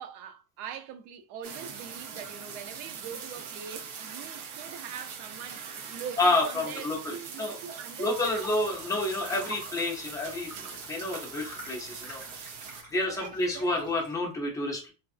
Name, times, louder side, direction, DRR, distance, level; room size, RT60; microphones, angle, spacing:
voice 1, 0.0-8.5 13.0-13.8, right 8 dB, 90° right, 0.6 m, -43 dB
sound 1, 1.4-12.8, right 6 dB, 55° right, 0.7 m, -42 dB
voice 2, 6.2-7.6 8.0-12.6 12.9-14.9, left 2 dB, 10° left, 0.5 m, -29 dB
sound 2, 8.1-14.1, right 1 dB, 20° right, 0.9 m, -48 dB
2.6 x 2.3 x 2.4 m
cardioid pair, 165°, 38 cm